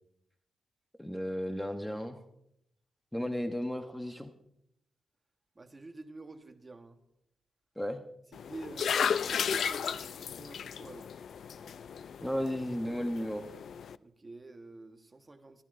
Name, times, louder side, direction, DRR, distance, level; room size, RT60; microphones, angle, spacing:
voice 1, 1.0-2.2 3.1-4.3 7.8-8.0 12.2-13.5, equal, 5° left, 0.9 m, -34 dB
voice 2, 5.5-7.0 8.3-11.1 14.0-15.6, right 3 dB, 25° right, 1.2 m, -48 dB
sound 1, 8.3-14.0, left 7 dB, 70° left, 0.4 m, -34 dB
23.0 x 13.5 x 2.6 m
cardioid pair, 105°, 0 cm